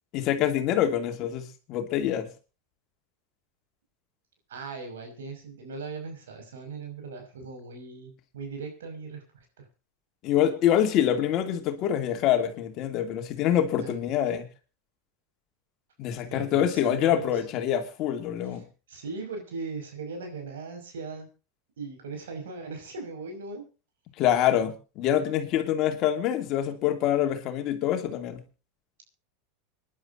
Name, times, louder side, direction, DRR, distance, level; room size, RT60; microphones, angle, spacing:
voice 1, 0.1-2.3 10.2-14.5 16.0-18.6 24.2-28.4, left 10 dB, 50° left, 7 dB, 2.7 m, -25 dB
voice 2, 4.5-9.2 9.6-9.7 13.8-14.1 16.2-17.7 18.5-21.3 21.8-23.6, right 4 dB, 80° right, 5 dB, 5.8 m, -39 dB
26.5 x 11.0 x 2.7 m, 0.33 s
hypercardioid pair, 100°, 0 cm